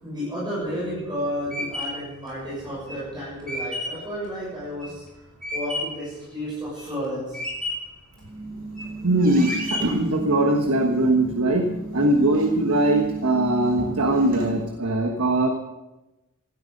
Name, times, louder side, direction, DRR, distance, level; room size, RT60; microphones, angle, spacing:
voice 1, 0.0-5.0 5.5-7.4 8.5-8.6, equal, 20° right, -8 dB, 6.9 m, -31 dB
sound 1, 0.6-6.1 6.5-7.1 7.3-8.0 8.5-9.0 9.4-10.1, left 1 dB, 5° left, 5.7 m, -32 dB
sound 2, 8.2-14.7, right 2 dB, 45° right, 4.4 m, -34 dB
voice 2, 9.0-15.5, right 1 dB, 75° right, 3 dB, 1.4 m, -21 dB
17.0 x 13.0 x 5.3 m, 1.0 s
head